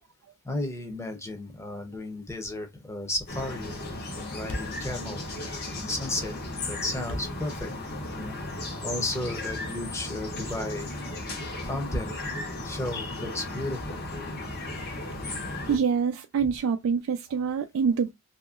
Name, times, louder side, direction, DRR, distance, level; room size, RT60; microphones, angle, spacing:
voice 1, 0.4-3.8 4.1-5.2 5.7-6.3 6.6-7.7 8.1-8.4 8.8-10.9 11.6-12.1 12.6-14.0, left 1 dB, 15° left, 0.7 m, -33 dB
Thump thud, 3.1-3.3 3.5-3.6 3.9-4.0 4.2-4.3 4.4-8.5, equal, 75° left, 0.7 m, -40 dB
sound 1, 3.3-15.8, left 2 dB, 50° left, 1.1 m, -35 dB
voice 2, 15.7-18.1, right 6 dB, 85° right, 0.3 m, -26 dB
2.8 x 2.8 x 2.4 m
head